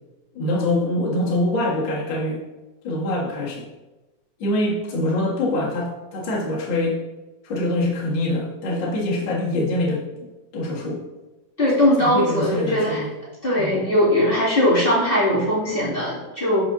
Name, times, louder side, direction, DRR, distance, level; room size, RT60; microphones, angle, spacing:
voice 1, 0.3-2.4 2.8-3.7 4.4-7.0 7.4-11.0 11.7-13.1 13.6-13.8, left 1 dB, 45° left, -5 dB, 1.8 m, -24 dB
voice 2, 11.6-13.0 13.4-16.6, left 1 dB, 20° left, -10 dB, 2.3 m, -20 dB
12.0 x 4.7 x 2.7 m, 1.1 s
omnidirectional pair, 3.9 m